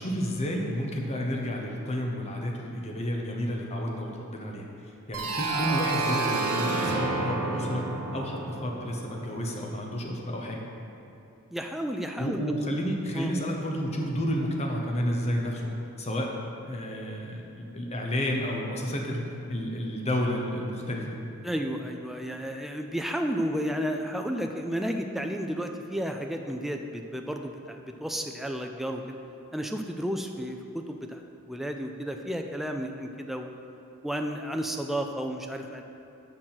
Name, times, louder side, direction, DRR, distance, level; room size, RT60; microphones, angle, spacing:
voice 1, 0.0-7.8 8.1-10.6 12.2-15.6 16.0-16.3 16.6-19.2 19.5-21.2, equal, 30° left, 0 dB, 0.8 m, -31 dB
sound 1, 5.1-9.8, right 3 dB, 75° right, 1.2 m, -30 dB
voice 2, 11.5-12.4 13.1-13.3 14.0-14.1 21.4-29.2 29.5-33.5 34.0-35.8, equal, ahead, 3 dB, 0.3 m, -32 dB
6.7 x 6.1 x 5.7 m, 2.7 s
head